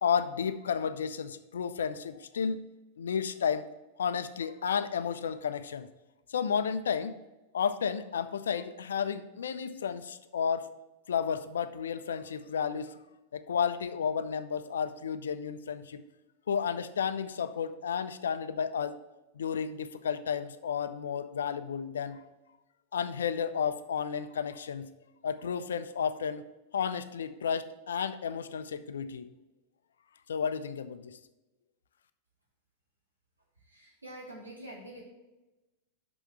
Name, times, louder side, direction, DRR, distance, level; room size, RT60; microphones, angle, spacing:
voice 1, 0.0-2.6 3.0-3.7 4.0-5.9 6.3-7.2 7.5-10.7 11.1-13.0 13.3-16.0 16.5-18.9 19.4-22.2 22.9-24.9 25.2-26.4 26.7-29.3 30.3-31.2, left 7 dB, 65° left, 12 dB, 0.5 m, -32 dB
voice 2, 33.7-35.0, right 1 dB, 80° right, -3 dB, 2.4 m, -46 dB
6.0 x 5.7 x 6.7 m, 1.1 s
figure-of-eight pair, 90°, 0 cm